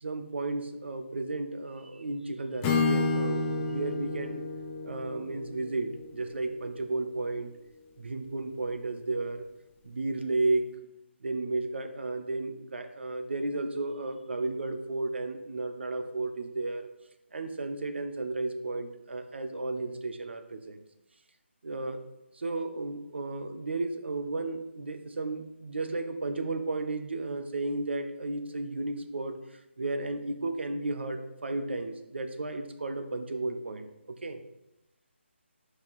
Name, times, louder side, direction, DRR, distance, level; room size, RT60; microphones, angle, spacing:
voice 1, 0.0-4.4 4.8-7.5 8.0-9.5 9.8-10.7 11.2-16.9 17.3-20.8 21.6-22.0 22.3-34.4, right 2 dB, 60° right, 7 dB, 0.7 m, -33 dB
Acoustic guitar / Strum, 2.6-6.6, left 3 dB, 10° left, 0.4 m, -30 dB
4.6 x 4.5 x 5.4 m, 0.89 s
figure-of-eight pair, 150°, 7 cm